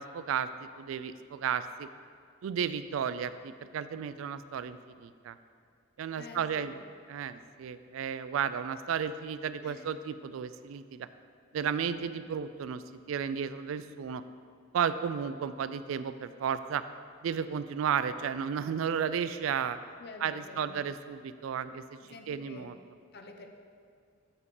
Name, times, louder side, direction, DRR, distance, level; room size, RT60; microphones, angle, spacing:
voice 1, 0.0-1.9 2.4-5.4 6.0-6.7 7.1-11.1 11.5-12.8 13.1-14.2 14.7-16.8 17.2-19.8 20.2-21.8 22.3-22.8, right 7 dB, 80° right, 13 dB, 0.3 m, -33 dB
voice 2, 6.2-6.8 9.6-9.9 20.0-20.9 22.0-22.7 23.1-23.5, left 3 dB, 55° left, 4 dB, 0.7 m, -48 dB
7.8 x 5.9 x 3.8 m, 2.3 s
head